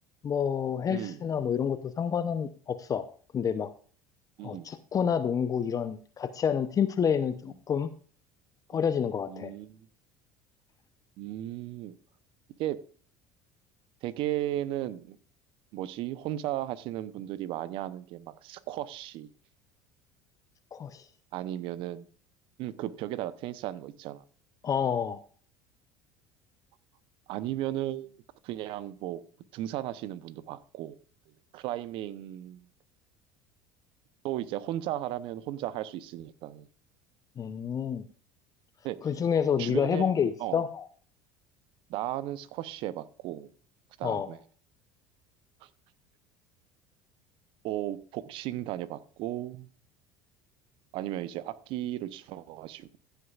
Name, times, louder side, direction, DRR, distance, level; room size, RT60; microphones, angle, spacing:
voice 1, 0.2-3.0 3.3-3.7 4.4-7.9 8.7-9.5 20.7-21.1 24.6-25.2 37.4-38.0 39.0-40.9 44.0-44.3, left 7 dB, 35° left, 11 dB, 0.7 m, -28 dB
voice 2, 0.9-1.2 4.4-4.7 8.7-8.8 9.3-9.9 11.2-12.0 12.6-12.8 14.0-15.2 15.7-19.3 21.3-22.0 22.6-24.2 27.3-29.2 29.5-31.0 31.5-32.7 34.2-36.7 38.8-39.0 39.6-40.1 40.4-40.6 41.9-43.5 44.0-44.4 45.6-45.7 47.6-49.7 50.9-53.0, right 13 dB, 60° right, 16 dB, 0.8 m, -35 dB
15.0 x 8.1 x 2.4 m, 0.42 s
hypercardioid pair, 75°, 10 cm